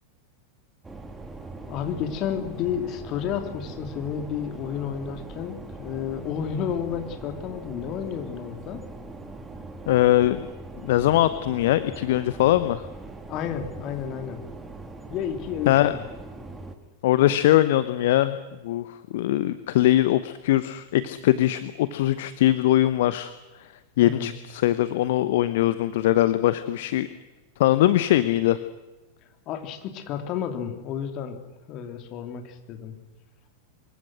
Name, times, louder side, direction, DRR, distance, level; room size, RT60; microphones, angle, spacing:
sound 1, 0.8-16.8, right 2 dB, 10° right, 2.7 m, -41 dB
voice 1, 1.7-8.8 13.3-14.4 15.1-16.0 24.0-24.3 29.5-31.4 31.7-32.9, left 8 dB, 35° left, 6 dB, 3.2 m, -31 dB
voice 2, 9.9-10.4 10.8-12.9 15.7-15.9 17.0-18.4 18.6-23.3 24.0-27.1 27.6-28.6, left 14 dB, 55° left, 13 dB, 1.0 m, -21 dB
25.5 x 22.5 x 6.4 m, 1.1 s
figure-of-eight pair, 90°, 0 cm